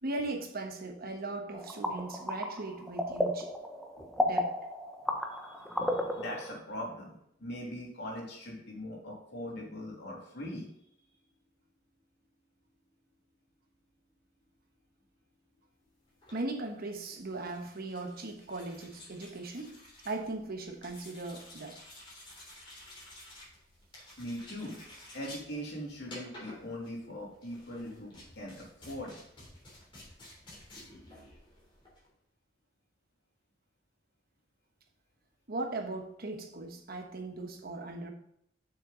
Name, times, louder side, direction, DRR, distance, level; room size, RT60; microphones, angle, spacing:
voice 1, 0.0-3.5 4.2-4.6 16.3-19.8 20.0-21.8 35.5-38.1, right 2 dB, 55° right, 4 dB, 1.1 m, -38 dB
sound 1, 1.5-6.6, left 1 dB, ahead, 0.9 m, -33 dB
voice 2, 5.6-7.1 7.4-10.7 24.2-24.8 25.1-29.2, equal, 65° left, -2 dB, 2.9 m, -41 dB
sound 2, 16.1-32.1, left 1 dB, 25° left, 3.2 m, -52 dB
7.2 x 6.5 x 3.9 m, 0.72 s
head